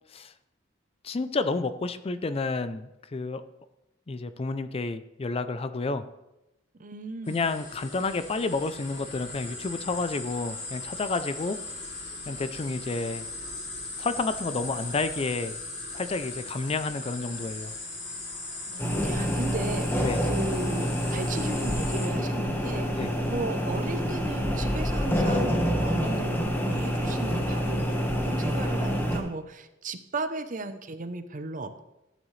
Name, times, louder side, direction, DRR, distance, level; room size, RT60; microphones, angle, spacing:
voice 1, 1.0-3.4 4.1-6.0 7.3-11.6 12.3-13.2 14.0-15.6 15.9-17.7 20.0-20.2 23.0-23.1, left 3 dB, 30° left, 12 dB, 0.4 m, -30 dB
voice 2, 6.8-7.5 18.7-28.0 28.2-31.8, right 3 dB, 45° right, 10 dB, 0.7 m, -36 dB
sound 1, 7.3-22.1, left 2 dB, 65° left, 3.6 m, -39 dB
sound 2, 18.8-29.2, equal, 10° left, 1.4 m, -27 dB
14.5 x 9.0 x 3.2 m, 0.92 s
head